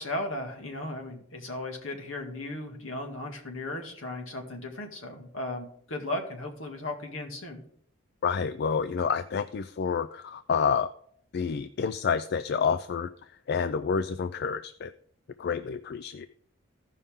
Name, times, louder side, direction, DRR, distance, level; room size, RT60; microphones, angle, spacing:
voice 1, 0.0-7.6, left 1 dB, 70° left, 3 dB, 1.9 m, -36 dB
voice 2, 8.2-10.9 11.3-13.1 13.5-14.9 15.4-16.3, left 6 dB, 50° left, 12 dB, 0.3 m, -28 dB
15.0 x 5.5 x 3.6 m, 0.63 s
head